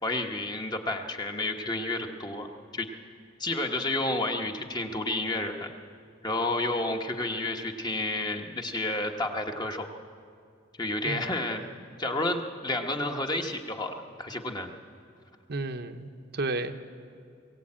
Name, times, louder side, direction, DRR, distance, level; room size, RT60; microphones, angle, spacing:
voice 1, 0.0-2.5 2.7-2.9 3.4-5.7 6.2-9.9 10.8-11.7 12.0-14.7, left 2 dB, 20° left, 4 dB, 1.2 m, -30 dB
voice 2, 15.5-16.7, right 2 dB, 55° right, 6 dB, 0.9 m, -32 dB
21.5 x 16.5 x 8.7 m, 2.3 s
head